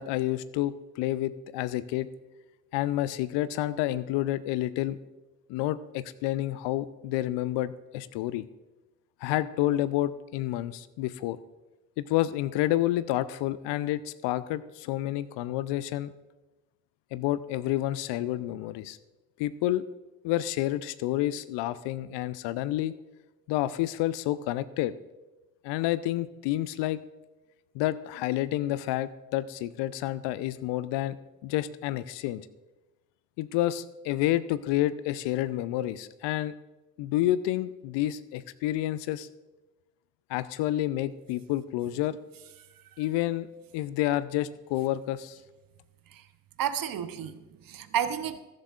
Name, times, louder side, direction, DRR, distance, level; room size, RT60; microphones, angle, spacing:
voice 1, 0.0-2.1 2.7-5.0 5.5-8.4 9.2-11.4 12.0-16.1 17.1-19.0 19.4-19.8 20.2-22.9 23.5-24.9 25.6-27.0 27.7-31.2 31.4-32.4 33.4-36.5 37.0-39.3 40.3-42.2 43.0-43.5 43.7-45.4, left 14 dB, 60° left, 0.6 m, -29 dB
voice 2, 46.6-48.4, right 9 dB, 45° right, 0.9 m, -31 dB
14.5 x 13.5 x 2.5 m
figure-of-eight pair, 45°, 48 cm